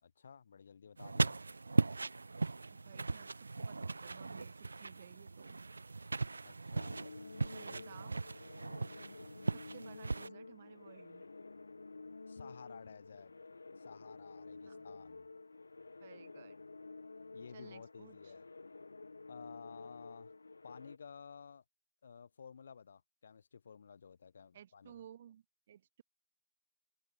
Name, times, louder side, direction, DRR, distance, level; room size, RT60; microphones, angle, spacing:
voice 1, 0.0-1.4 6.4-7.0 7.7-8.0 8.6-8.9 12.3-13.3 13.8-15.3 17.3-18.5 19.3-20.3 20.6-21.6 22.0-25.0, left 6 dB, 45° left, 4.0 m, -54 dB
sound 1, 1.0-10.3, right 3 dB, 85° right, 0.4 m, -38 dB
voice 2, 2.7-5.6 7.5-8.2 9.5-11.3 14.7-14.9 16.0-16.6 17.5-18.3 24.5-26.0, right 10 dB, 30° right, 6.0 m, -57 dB
sound 2, 6.7-21.0, left 3 dB, 85° left, 1.8 m, -51 dB
open air
hypercardioid pair, 170°, 0 cm